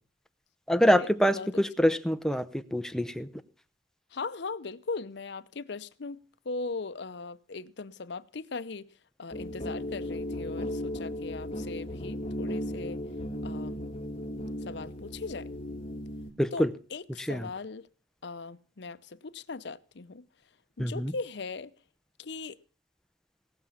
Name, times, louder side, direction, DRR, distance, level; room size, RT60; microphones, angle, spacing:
voice 1, 0.7-3.3 16.4-16.7 17.2-17.5 20.8-21.1, equal, 5° left, 0.7 m, -25 dB
voice 2, 4.1-8.9 9.2-13.0 13.4-13.9 14.6-15.5 16.5-17.9 18.2-20.3 20.8-21.7 22.2-22.6, left 4 dB, 65° left, 0.7 m, -39 dB
sound 1, 9.3-16.3, left 1 dB, 30° left, 2.1 m, -36 dB
18.0 x 7.0 x 7.2 m
head